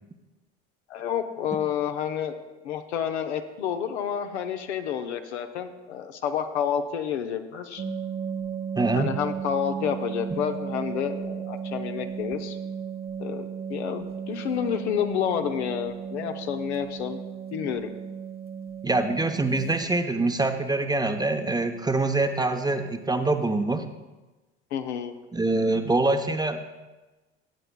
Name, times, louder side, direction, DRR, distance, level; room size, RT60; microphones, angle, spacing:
voice 1, 0.9-2.4 2.6-7.8 8.9-12.6 13.2-17.2 17.5-17.9 24.7-25.1, left 8 dB, 75° left, 7 dB, 0.8 m, -29 dB
sound 1, 7.8-19.8 21.7-21.9 22.2-22.3 22.7-22.9 23.2-23.5, right 7 dB, 30° right, 1.0 m, -35 dB
voice 2, 8.8-9.1 18.8-23.9 25.3-26.6, right 2 dB, 10° right, 7 dB, 0.8 m, -24 dB
16.5 x 9.0 x 2.2 m, 1.2 s
figure-of-eight pair, 60°, 34 cm